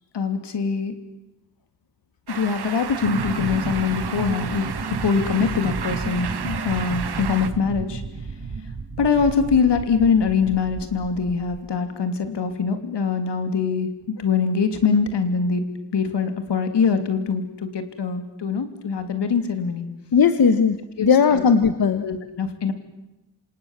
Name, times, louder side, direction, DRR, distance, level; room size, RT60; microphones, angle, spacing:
voice 1, 0.1-0.9 2.3-8.0 9.0-15.6 15.9-19.9 21.0-21.5 22.0-22.7, left 5 dB, 80° left, 8 dB, 3.1 m, -23 dB
sound 1, 2.3-7.5, right 7 dB, 70° right, 1.7 m, -33 dB
sound 2, 3.0-11.6, right 4 dB, 45° right, 2.2 m, -32 dB
voice 2, 20.1-22.0, left 6 dB, 60° left, 10 dB, 1.3 m, -18 dB
28.0 x 26.5 x 7.5 m, 0.94 s
wide cardioid pair, 175°, 41 cm